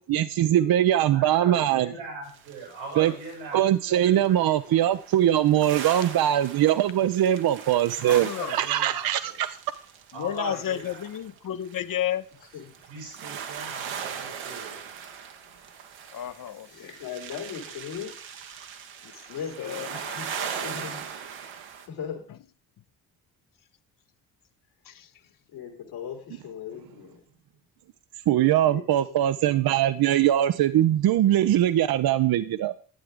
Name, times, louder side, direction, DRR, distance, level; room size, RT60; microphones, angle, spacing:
voice 1, 0.0-1.9 3.0-3.1 3.5-9.6 28.3-32.7, right 12 dB, 50° right, 12 dB, 0.6 m, -22 dB
voice 2, 1.1-4.8 8.0-9.4 10.1-11.0 12.9-14.8, right 3 dB, 90° right, -1 dB, 6.6 m, -40 dB
sound 1, 2.2-3.5 4.2-21.9, right 7 dB, 70° right, 1.3 m, -40 dB
voice 3, 8.0-8.6 10.1-12.2 16.1-16.9 19.0-20.8 22.3-22.4 24.8-25.1, left 10 dB, 45° left, 13 dB, 0.7 m, -33 dB
voice 4, 16.7-18.1 19.3-21.0 21.9-22.2 25.5-27.2 28.3-29.2, left 7 dB, 75° left, 1 dB, 2.8 m, -38 dB
11.5 x 8.8 x 3.6 m, 0.42 s
hypercardioid pair, 45°, 48 cm